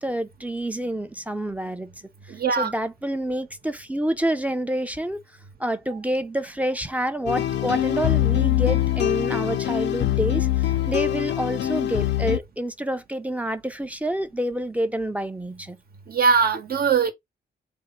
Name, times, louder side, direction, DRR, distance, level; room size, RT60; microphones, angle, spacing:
voice 1, 0.0-1.9 2.3-5.2 5.6-15.8, right 1 dB, 10° right, 0.5 m, -28 dB
voice 2, 2.3-2.7 16.1-17.1, right 6 dB, 60° right, 1.0 m, -21 dB
sound 1, 7.3-12.4, left 13 dB, 80° left, 0.5 m, -23 dB
3.5 x 2.0 x 4.3 m
cardioid pair, 70°, 18 cm